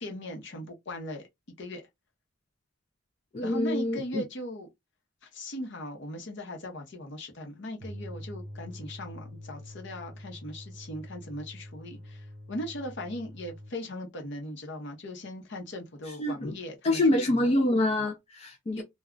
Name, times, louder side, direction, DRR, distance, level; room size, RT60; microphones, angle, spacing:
voice 1, 0.0-1.2 1.6-1.8 3.4-4.7 5.3-17.5 18.7-18.8, left 1 dB, 60° left, 0.8 m, -39 dB
voice 2, 3.3-4.2 16.1-16.5 16.8-18.8, left 1 dB, 30° left, 0.4 m, -26 dB
sound 1, 7.8-13.8, equal, 60° right, 0.8 m, -45 dB
2.2 x 2.2 x 3.6 m
head